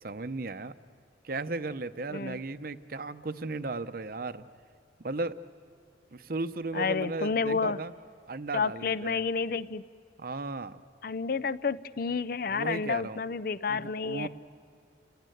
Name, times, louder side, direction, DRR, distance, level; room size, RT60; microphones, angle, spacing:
voice 1, 0.0-0.7 1.2-4.4 5.0-5.4 6.1-7.9 8.3-9.2 10.2-10.8 12.5-13.2 13.7-14.3, right 3 dB, 50° right, 12 dB, 0.7 m, -35 dB
voice 2, 2.1-2.4 6.7-7.8 8.5-9.8 11.0-14.3, left 5 dB, 50° left, 16 dB, 0.6 m, -30 dB
29.0 x 18.5 x 9.3 m, 2.3 s
head